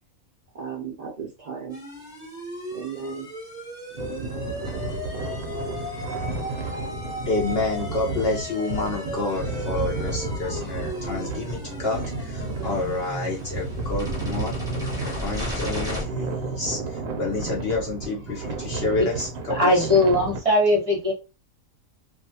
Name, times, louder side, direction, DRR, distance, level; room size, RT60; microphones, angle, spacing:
voice 1, 0.5-1.8 2.7-3.3 3.9-4.6, right 7 dB, 80° right, 0.3 m, -36 dB
sound 1, 1.7-16.0, left 1 dB, 5° right, 0.6 m, -36 dB
sound 2, 4.0-20.4, right 3 dB, 60° right, 0.8 m, -32 dB
voice 2, 7.3-19.9, left 2 dB, 55° left, 0.7 m, -29 dB
voice 3, 19.5-21.1, left 1 dB, 25° right, 0.9 m, -19 dB
2.5 x 2.2 x 2.7 m
omnidirectional pair, 1.5 m